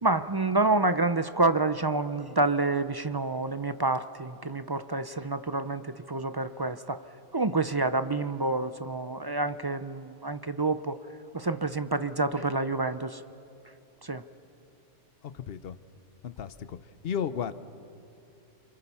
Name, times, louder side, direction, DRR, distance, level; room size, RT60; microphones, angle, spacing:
voice 1, 0.0-7.0 7.3-11.0 11.3-13.2 14.0-14.2, right 3 dB, 35° right, 12 dB, 0.4 m, -28 dB
voice 2, 15.3-15.7 16.2-16.8 17.0-17.5, left 8 dB, 55° left, 13 dB, 1.0 m, -33 dB
28.5 x 27.5 x 5.5 m, 2.8 s
omnidirectional pair, 1.2 m